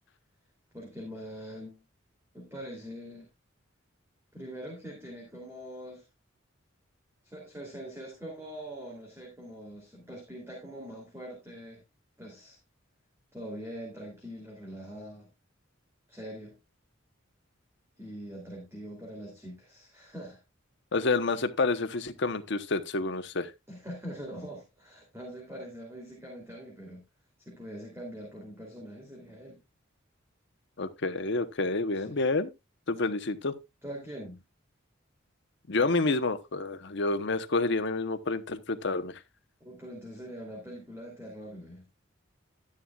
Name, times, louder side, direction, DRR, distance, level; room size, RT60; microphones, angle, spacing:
voice 1, 0.7-1.8 2.3-3.3 4.3-6.1 7.2-11.8 12.2-12.6 13.3-15.3 16.1-16.6 18.0-20.4 23.7-27.0 27.5-29.6 31.9-32.2 33.8-34.4 39.6-41.9, equal, 15° right, 2.9 m, -43 dB
voice 2, 20.9-23.5 30.8-32.5 32.9-33.5 35.7-39.2, left 3 dB, 60° left, 0.9 m, -29 dB
12.5 x 9.9 x 2.3 m
head